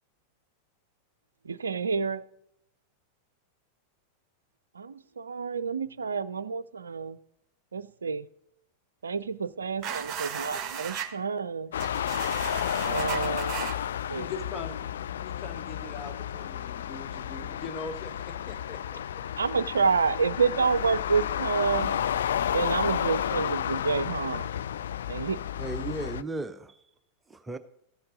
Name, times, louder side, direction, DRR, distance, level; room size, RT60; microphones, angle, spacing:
voice 1, 1.4-2.2 4.7-7.2 7.7-8.3 9.0-11.7 12.8-13.8 14.1-14.3 19.4-22.0 22.5-24.5 25.1-25.4, right 5 dB, 75° right, 0.4 m, -29 dB
sound 1, 9.8-11.1 11.8-13.7, right 8 dB, 30° right, 1.2 m, -36 dB
sound 2, 11.7-26.2, left 10 dB, 65° left, 0.3 m, -31 dB
voice 2, 14.1-14.8 15.1-19.0, left 4 dB, 30° left, 1.3 m, -41 dB
voice 3, 25.6-26.9 27.3-27.6, right 3 dB, 10° right, 0.5 m, -36 dB
13.5 x 7.8 x 3.8 m
figure-of-eight pair, 90°, 0 cm